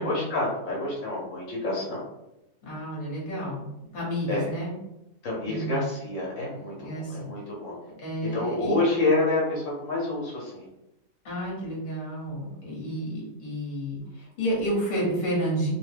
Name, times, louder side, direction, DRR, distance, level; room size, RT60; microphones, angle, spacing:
voice 1, 0.0-2.0 4.3-4.5 5.2-7.7 8.3-10.7, left 2 dB, 60° left, -4 dB, 1.0 m, -28 dB
voice 2, 2.6-4.7 5.4-5.8 6.8-7.3 8.0-8.8 11.2-15.7, equal, 40° left, -4 dB, 1.1 m, -31 dB
2.6 x 2.1 x 3.3 m, 0.89 s
omnidirectional pair, 1.6 m